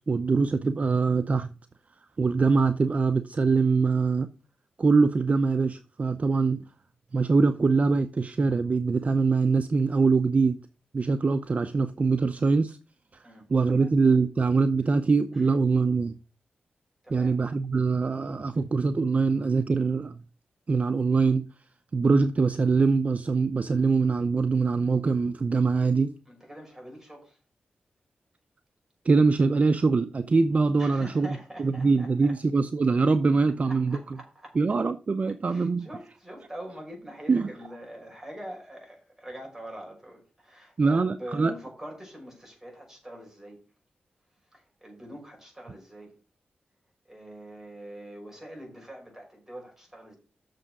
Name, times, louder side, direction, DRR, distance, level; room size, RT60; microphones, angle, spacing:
voice 1, 0.1-1.5 2.2-4.3 4.8-6.6 7.1-10.6 10.9-12.8 13.5-16.1 17.1-20.2 20.7-21.5 21.9-26.1 29.1-31.3 31.6-34.0 34.6-35.9 37.3-37.5 40.8-41.5, right 4 dB, 45° right, 0.6 m, -23 dB
voice 2, 13.2-13.9 15.3-15.5 17.0-17.3 26.3-27.4 30.8-32.3 33.6-34.6 35.5-43.6 44.5-46.1 47.1-50.2, right 1 dB, 10° right, 5.6 m, -44 dB
7.7 x 6.8 x 6.1 m
wide cardioid pair, 90°, 3 cm